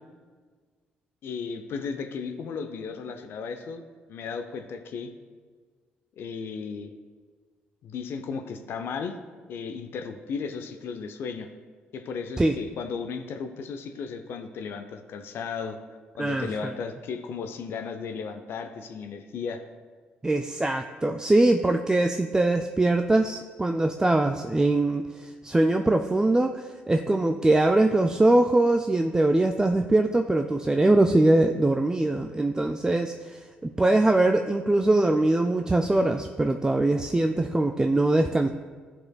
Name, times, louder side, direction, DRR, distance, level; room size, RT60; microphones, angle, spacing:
voice 1, 1.2-3.8 4.1-5.1 6.2-6.9 7.8-9.2 9.5-11.5 11.9-15.8 16.2-19.6, left 5 dB, 65° left, 6 dB, 0.5 m, -35 dB
voice 2, 16.2-16.7 20.2-38.5, right 2 dB, 15° right, 6 dB, 0.3 m, -22 dB
12.0 x 4.3 x 2.3 m, 1.5 s
hypercardioid pair, 55°, 4 cm